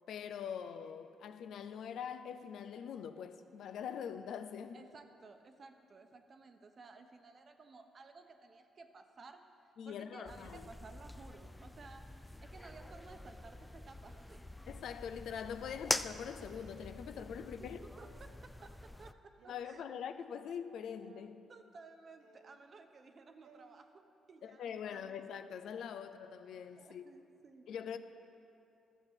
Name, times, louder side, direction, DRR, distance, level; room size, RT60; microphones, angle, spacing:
voice 1, 0.1-4.8 9.8-10.7 14.7-17.8 19.5-21.4 24.4-27.1 27.7-28.0, left 8 dB, 75° left, 0.6 m, -43 dB
voice 2, 4.7-14.6 17.4-19.9 21.5-25.2 26.8-27.7, right 4 dB, 45° right, 0.9 m, -56 dB
sound 1, 10.3-19.1, left 1 dB, 10° left, 0.4 m, -44 dB
sound 2, 16.4-17.0 17.8-18.5 19.4-19.8 20.8-21.3 22.2-22.7 23.4-23.8, right 8 dB, 75° right, 0.6 m, -63 dB
12.5 x 7.0 x 7.3 m
cardioid pair, 90°, 0 cm